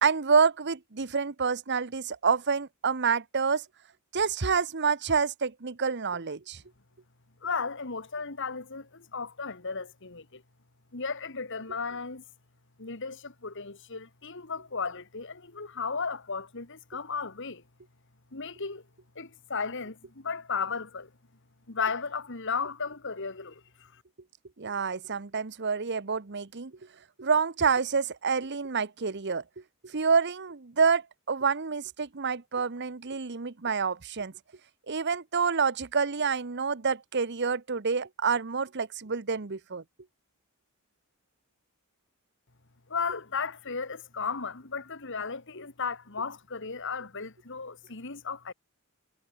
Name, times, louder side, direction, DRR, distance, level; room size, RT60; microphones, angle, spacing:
voice 1, 0.0-3.6 4.1-6.6 24.6-26.7 27.2-29.4 29.8-34.3 34.9-39.8, right 5 dB, 50° right, 1.0 m, -28 dB
voice 2, 7.4-10.4 10.9-12.2 12.8-17.6 18.3-18.8 19.2-21.1 21.7-24.0 42.9-48.5, left 5 dB, 55° left, 2.0 m, -35 dB
head